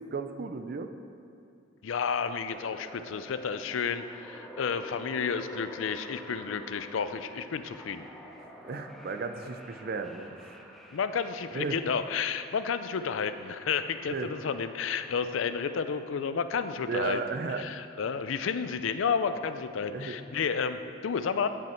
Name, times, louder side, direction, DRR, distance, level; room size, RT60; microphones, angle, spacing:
voice 1, 0.1-0.9 8.6-10.6 11.5-11.8 14.1-14.3 16.9-17.7 19.9-20.2, right 4 dB, 50° right, 7 dB, 0.5 m, -34 dB
voice 2, 1.8-8.1 10.9-17.2 17.6-21.5, left 6 dB, 90° left, 11 dB, 0.4 m, -31 dB
sound 1, 2.5-16.5, equal, ahead, 0.6 m, -49 dB
10.0 x 6.2 x 4.4 m, 2.5 s
head